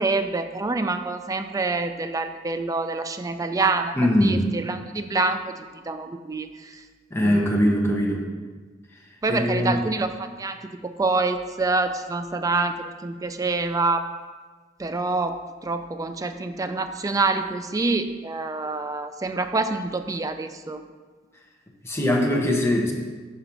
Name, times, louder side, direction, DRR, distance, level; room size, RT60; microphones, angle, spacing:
voice 1, 0.0-3.9 4.2-6.8 7.2-7.7 9.2-12.7 13.0-14.0 14.8-20.8, right 3 dB, 20° right, 8 dB, 0.3 m, -26 dB
voice 2, 3.9-4.4 7.1-8.3 9.3-9.9 21.8-22.9, left 1 dB, 15° left, 0 dB, 0.9 m, -21 dB
6.7 x 3.9 x 5.8 m, 1.4 s
head